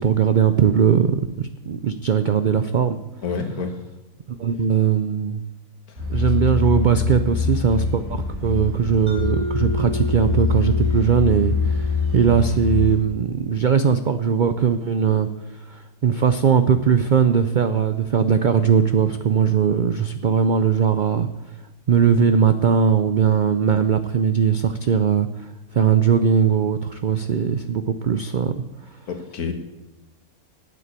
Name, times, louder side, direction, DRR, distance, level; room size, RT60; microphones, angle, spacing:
voice 1, 0.0-3.0 4.4-5.4 6.1-15.3 15.7-21.3 21.9-25.5 25.7-28.5, right 7 dB, 70° right, 10 dB, 0.4 m, -19 dB
voice 2, 3.2-3.7 5.9-6.0 29.1-29.5, left 5 dB, 85° left, 6 dB, 1.9 m, -28 dB
sound 1, 6.0-13.0, left 5 dB, 50° right, 3.5 m, -24 dB
Mallet percussion, 9.1-13.6, equal, 10° right, 2.8 m, -33 dB
9.2 x 8.5 x 8.1 m, 1.0 s
omnidirectional pair, 1.5 m